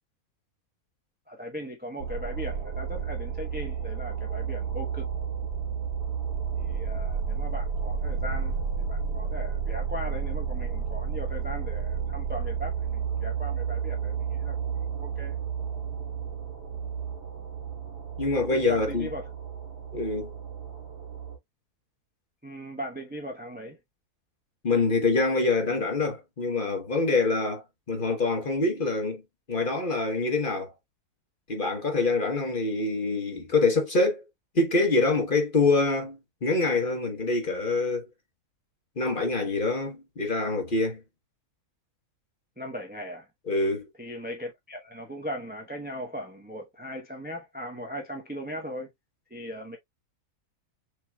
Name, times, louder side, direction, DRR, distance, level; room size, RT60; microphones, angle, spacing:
voice 1, 1.3-5.1 6.6-15.4 18.5-19.3 22.4-23.8 42.6-43.3 44.0-48.9 49.3-49.8, equal, 10° right, 0.5 m, -38 dB
sound 1, 2.0-21.4, right 7 dB, 80° right, 2.2 m, -32 dB
voice 2, 18.2-19.1 19.9-20.3 24.6-29.2 29.5-30.7 31.5-34.2 34.5-38.1 39.0-41.0 43.5-43.9, left 3 dB, 35° left, 1.2 m, -25 dB
6.7 x 3.0 x 2.3 m
omnidirectional pair, 1.6 m